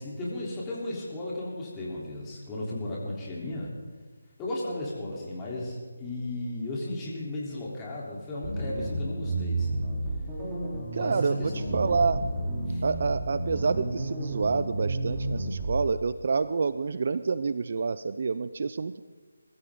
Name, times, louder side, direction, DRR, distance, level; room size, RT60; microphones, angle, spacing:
voice 1, 0.0-3.7 4.4-9.9 11.0-11.1 11.4-12.1 12.7-12.8, left 1 dB, 15° left, -5 dB, 3.6 m, -35 dB
sound 1, 8.4-15.8, right 2 dB, 15° right, 3.6 m, -31 dB
voice 2, 10.9-12.2 12.8-19.0, right 4 dB, 50° right, 14 dB, 0.5 m, -28 dB
21.5 x 14.5 x 3.9 m, 1.4 s
figure-of-eight pair, 155°, 0 cm